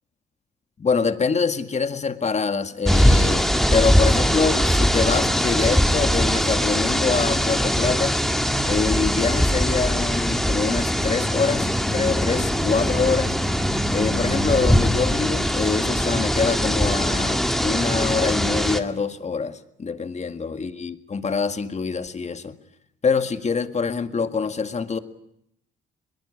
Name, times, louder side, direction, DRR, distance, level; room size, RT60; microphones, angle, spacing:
voice 1, 0.8-8.2 8.7-13.4 13.9-22.6 23.0-25.0, left 5 dB, 35° left, 10 dB, 1.9 m, -25 dB
sound 1, 2.9-18.8, equal, ahead, 2.0 m, -21 dB
22.0 x 21.0 x 9.8 m, 0.76 s
cardioid pair, 90°, 20 cm